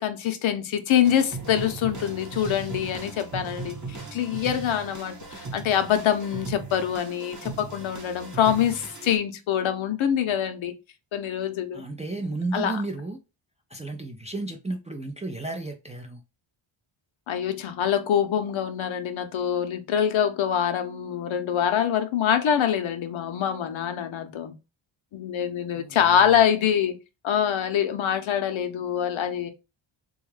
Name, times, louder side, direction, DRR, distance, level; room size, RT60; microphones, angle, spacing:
voice 1, 0.0-10.7 11.1-11.8 12.5-12.7 17.3-24.5 25.1-27.0 27.2-29.5, left 9 dB, 70° left, 0.7 m, -25 dB
sound 1, 1.0-9.2, right 4 dB, 35° right, 0.9 m, -38 dB
voice 2, 11.7-13.2 13.7-16.2 25.7-26.4, right 2 dB, 15° right, 0.3 m, -33 dB
3.6 x 2.3 x 3.1 m
wide cardioid pair, 145°, 49 cm